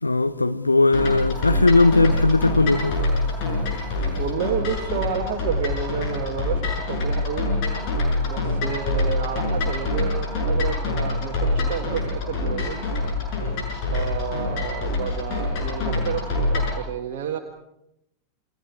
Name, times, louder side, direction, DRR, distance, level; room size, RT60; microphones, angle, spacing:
voice 1, 0.0-3.0, left 3 dB, 80° left, 1.0 m, -18 dB
sound 1, 0.9-16.8, left 2 dB, 45° left, 7.1 m, -25 dB
voice 2, 4.2-7.5 8.2-12.8 13.9-17.4, right 7 dB, 50° right, 1.7 m, -30 dB
28.5 x 22.0 x 4.7 m
figure-of-eight pair, 90°, 0 cm